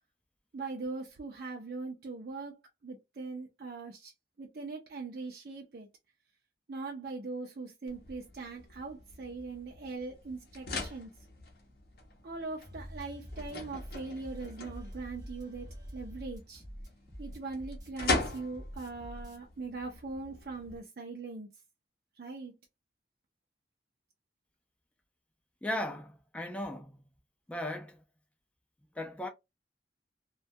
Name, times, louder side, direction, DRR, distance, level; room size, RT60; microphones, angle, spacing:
voice 1, 0.5-2.5 2.8-4.1 4.4-5.9 6.7-11.2 12.2-16.6 17.2-21.5 22.2-22.6, right 3 dB, 60° right, 0.4 m, -41 dB
sound 1, 7.9-20.8, left 3 dB, 60° left, 0.6 m, -41 dB
sound 2, 12.6-19.4, equal, 20° right, 0.9 m, -46 dB
voice 2, 25.6-27.0 27.5-28.0 29.0-29.3, left 1 dB, 5° left, 0.3 m, -37 dB
2.2 x 2.1 x 2.6 m
head